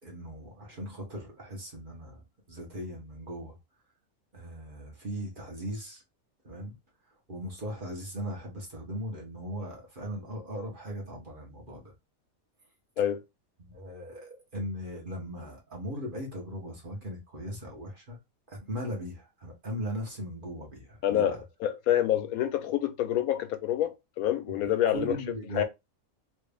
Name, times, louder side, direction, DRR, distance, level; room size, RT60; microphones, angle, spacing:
voice 1, 0.0-3.6 4.3-6.0 6.4-6.7 7.3-11.9 13.6-18.2 18.5-21.4 24.5-25.6, equal, 40° right, 1.3 m, -38 dB
voice 2, 21.0-25.2 25.6-25.7, left 11 dB, 80° left, 1.0 m, -27 dB
3.4 x 2.5 x 3.3 m
omnidirectional pair, 1.5 m